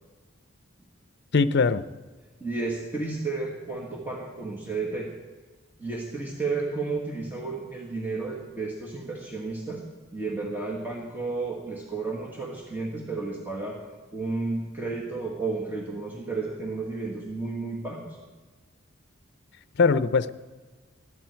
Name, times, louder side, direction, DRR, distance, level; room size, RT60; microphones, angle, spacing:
voice 1, 1.3-1.8 19.8-20.3, left 4 dB, 55° left, 13 dB, 0.6 m, -21 dB
voice 2, 2.4-5.1 5.8-9.8 10.1-13.8 14.1-18.2, right 3 dB, 10° right, -3 dB, 1.9 m, -32 dB
20.5 x 13.5 x 4.6 m, 1.3 s
head